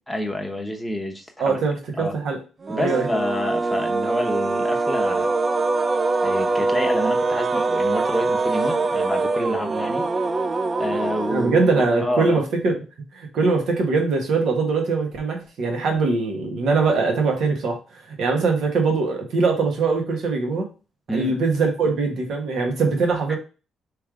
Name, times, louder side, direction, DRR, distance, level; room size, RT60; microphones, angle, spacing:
voice 1, 0.1-1.6 2.0-2.1 2.7-5.3 6.2-10.0 10.8-12.4 21.1-21.3 23.3-23.4, left 1 dB, ahead, 2 dB, 0.9 m, -28 dB
voice 2, 1.4-2.4 2.8-3.1 11.3-12.8 13.1-17.8 18.2-20.7 21.1-23.4, right 4 dB, 70° right, 2 dB, 1.4 m, -22 dB
sound 1, 2.6-12.0, right 3 dB, 35° right, 0.4 m, -23 dB
3.3 x 3.2 x 3.7 m, 0.33 s
cardioid pair, 90°, 0 cm